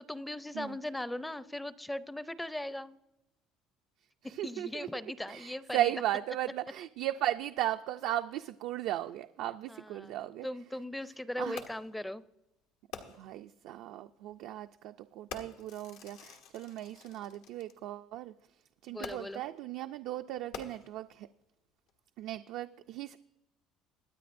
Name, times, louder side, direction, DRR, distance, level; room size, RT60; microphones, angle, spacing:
voice 1, 0.0-3.0 4.4-5.9 9.7-10.1 10.4-12.2 18.9-19.4, left 1 dB, 5° left, 15 dB, 0.5 m, -39 dB
voice 2, 4.2-4.9 5.3-10.5 11.4-11.6 13.1-18.3 18.8-21.3 22.2-23.2, right 13 dB, 70° right, 7 dB, 0.4 m, -36 dB
Fireworks, 11.6-12.0 12.9-13.4 14.3-14.5 15.3-17.7 19.0-19.5 20.4-21.2 21.9-22.0, left 6 dB, 90° left, 1.4 m, -47 dB
23.0 x 9.3 x 2.6 m, 0.92 s
cardioid pair, 115°, 0 cm